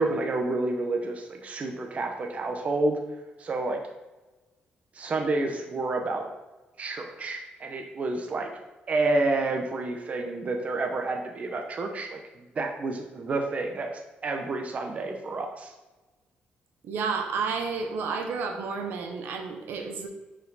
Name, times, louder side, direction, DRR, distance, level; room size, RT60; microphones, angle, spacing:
voice 1, 0.0-3.0 3.4-3.8 4.9-6.2 6.8-8.5 8.9-15.7, right 2 dB, 40° right, 3 dB, 0.8 m, -29 dB
voice 2, 16.8-20.1, right 5 dB, 80° right, 4 dB, 0.9 m, -31 dB
6.0 x 4.7 x 4.1 m, 1.1 s
cardioid pair, 110°, 4 cm